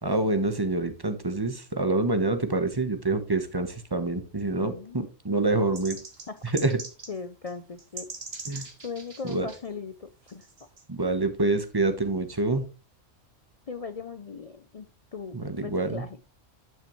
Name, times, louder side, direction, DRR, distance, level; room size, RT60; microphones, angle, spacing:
voice 1, 0.0-6.0 6.5-6.8 8.5-8.6 9.3-9.5 10.9-12.6 15.3-16.0, right 2 dB, 20° right, 8 dB, 1.0 m, -26 dB
voice 2, 4.5-5.0 5.4-5.7 6.3-6.4 7.1-8.1 8.8-10.5 13.7-16.2, left 5 dB, 50° left, 11 dB, 0.4 m, -39 dB
sound 1, 5.7-7.2 7.5-7.6 7.8-9.6 10.3-10.8, right 3 dB, 55° right, 1.9 m, -41 dB
11.0 x 5.9 x 3.1 m, 0.31 s
omnidirectional pair, 1.3 m